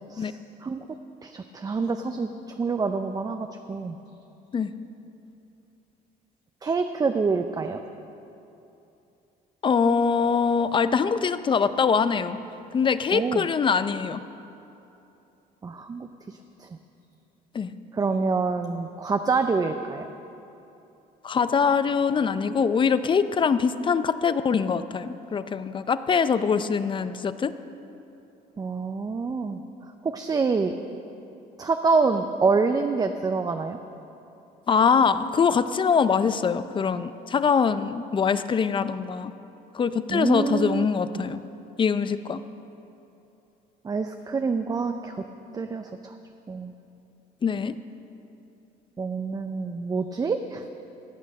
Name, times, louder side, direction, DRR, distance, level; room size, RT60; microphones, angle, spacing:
voice 1, 1.2-2.3 2.6-4.0 6.6-7.8 13.1-13.5 15.6-16.7 17.9-20.1 28.6-29.6 30.0-30.7 31.6-33.8 40.1-40.9 41.2-41.3 43.8-45.2 45.5-46.1 46.5-46.7 49.0-50.6, right 4 dB, 20° right, 7 dB, 0.5 m, -26 dB
voice 2, 9.6-12.4 12.7-14.2 17.5-17.7 21.2-27.5 34.7-39.3 39.7-41.4 41.8-42.4 47.4-47.8, left 6 dB, 30° left, 12 dB, 0.5 m, -23 dB
14.5 x 8.2 x 6.5 m, 2.9 s
cardioid pair, 110°, 17 cm